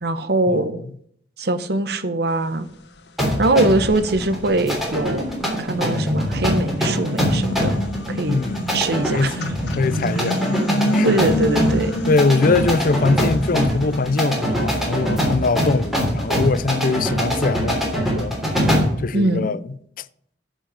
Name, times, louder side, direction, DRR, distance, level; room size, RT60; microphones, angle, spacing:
voice 1, 0.0-0.8 1.4-2.7 3.4-5.3 5.6-7.7 8.1-8.4 8.7-9.5 11.0-11.9 19.1-19.5, right 2 dB, 65° right, 1.0 m, -22 dB
sound 1, 3.1-3.2 3.7-6.1 6.6-17.9, left 1 dB, 70° left, 1.4 m, -29 dB
sound 2, 3.2-19.0, equal, ahead, 3.2 m, -23 dB
voice 2, 8.3-8.6 9.1-11.2 12.1-18.3 19.0-19.6 20.0-20.1, left 3 dB, 50° left, 0.5 m, -22 dB
11.0 x 5.6 x 7.1 m
head